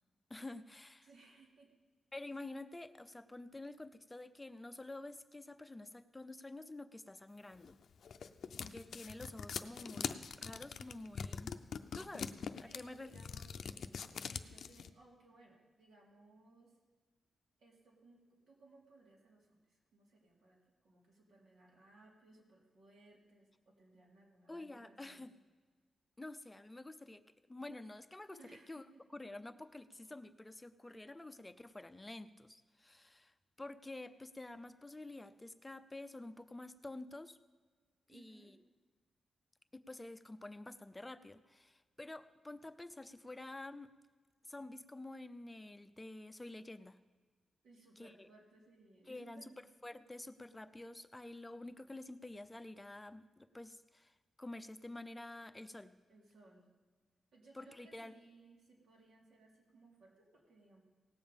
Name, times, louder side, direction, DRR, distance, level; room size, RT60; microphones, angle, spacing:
voice 1, 0.3-1.1 2.1-7.8 8.6-11.5 11.9-13.1 24.5-25.3 26.2-27.2 27.5-28.4 28.7-28.8 29.1-37.4 38.1-38.6 39.7-43.9 44.4-47.0 48.0-48.3 49.1-49.5 49.8-56.0 57.5-58.1, left 2 dB, 15° left, 11 dB, 0.5 m, -49 dB
voice 2, 1.0-1.7 12.6-13.5 14.1-16.8 17.6-25.3 28.3-29.0 38.1-38.6 47.6-49.7 56.1-56.7 57.3-60.8, right 2 dB, 80° right, -2 dB, 2.9 m, -63 dB
sound 1, 7.6-14.9, left 6 dB, 70° left, 0.5 m, -43 dB
17.5 x 7.1 x 5.3 m, 1.4 s
cardioid pair, 100°, 0 cm